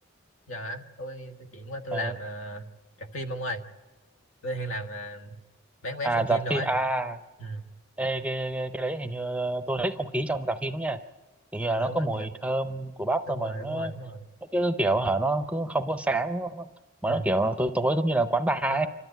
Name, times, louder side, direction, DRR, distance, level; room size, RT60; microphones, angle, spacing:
voice 1, 0.5-2.7 3.0-3.7 4.4-5.4 5.8-6.7 7.4-7.7 11.8-12.3 13.3-14.2 17.1-17.3 18.7-18.9, equal, 80° left, 5 dB, 1.5 m, -35 dB
voice 2, 6.0-7.2 8.0-11.0 11.5-13.9 14.5-16.7 17.0-18.9, right 2 dB, 5° right, 9 dB, 0.6 m, -27 dB
27.5 x 13.0 x 9.2 m, 1.2 s
head